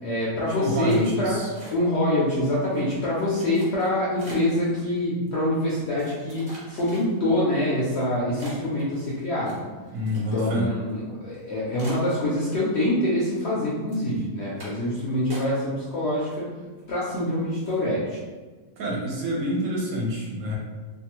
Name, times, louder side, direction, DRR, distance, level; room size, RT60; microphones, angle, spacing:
voice 1, 0.0-1.4 1.7-9.6 10.1-16.4 16.9-18.2, left 1 dB, 65° left, -7 dB, 0.7 m, -25 dB
voice 2, 0.6-1.5 9.9-10.7 18.8-20.6, equal, 70° right, -2 dB, 0.9 m, -28 dB
sound 1, 0.9-2.1 2.4-2.8 3.3-4.6 5.3-5.4 6.0-7.4 7.9-8.0 8.4-10.6 10.9-11.0 11.3-11.4 11.8-12.8 13.2-13.6 13.9-14.1 14.6-14.9 15.3-15.9 16.2-16.8 17.2-17.3 17.6-17.9, equal, 40° right, 1.0 m, -45 dB
2.6 x 2.3 x 2.9 m, 1.3 s
omnidirectional pair, 1.6 m